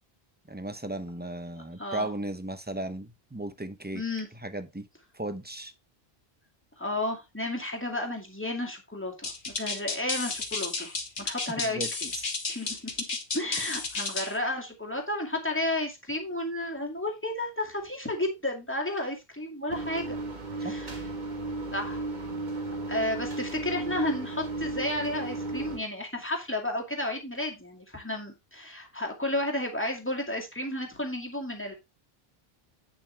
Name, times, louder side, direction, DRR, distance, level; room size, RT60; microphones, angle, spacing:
voice 1, 0.5-4.0 4.4-4.9 5.1-5.7 11.6-11.9 12.1-12.2 20.6-20.8, right 1 dB, 10° right, 0.7 m, -35 dB
voice 2, 1.8-2.1 3.9-4.3 6.8-10.9 11.2-12.1 12.5-13.0 13.3-20.2 20.6-21.0 21.7-22.0 22.9-31.7, left 1 dB, 10° left, 2.2 m, -32 dB
sound 1, 9.2-14.4, left 4 dB, 55° left, 1.5 m, -32 dB
sound 2, 19.7-25.8, right 2 dB, 50° right, 1.6 m, -34 dB
8.7 x 6.9 x 3.3 m
omnidirectional pair, 1.0 m